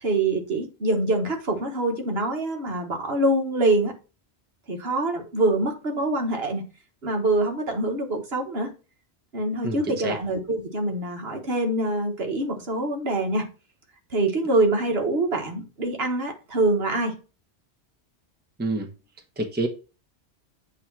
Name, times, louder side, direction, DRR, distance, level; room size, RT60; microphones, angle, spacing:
voice 1, 0.0-3.9 4.7-6.6 7.0-8.7 9.3-13.5 14.1-17.1, right 2 dB, 60° right, 1.5 m, -25 dB
voice 2, 9.6-10.2 18.6-18.9 19.4-19.7, right 2 dB, 10° right, 0.8 m, -27 dB
8.0 x 2.9 x 4.5 m
omnidirectional pair, 1.2 m